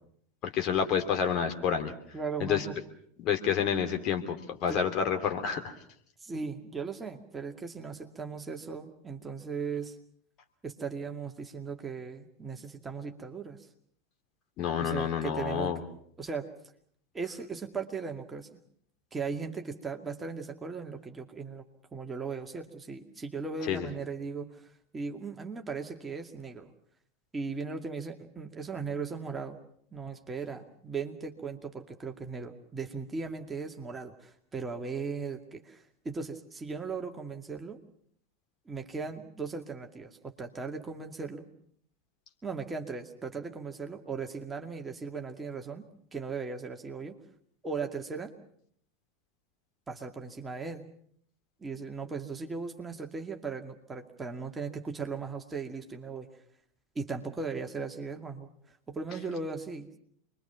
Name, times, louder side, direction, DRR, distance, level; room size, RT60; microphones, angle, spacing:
voice 1, 0.5-1.9 2.4-2.6 3.2-5.7 14.6-15.8 23.7-23.9, left 7 dB, 40° left, 5 dB, 2.9 m, -29 dB
voice 2, 2.1-2.8 4.7-4.8 6.2-10.0 10.6-13.6 14.8-16.5 17.1-18.6 19.1-21.6 21.9-26.7 27.3-29.6 29.9-37.8 38.7-41.5 42.4-47.1 47.6-48.3 49.9-50.9 51.6-56.3 57.0-58.5 58.9-60.0, right 5 dB, 15° right, 3 dB, 2.4 m, -38 dB
28.0 x 22.5 x 5.9 m, 0.65 s
figure-of-eight pair, 85°, 0 cm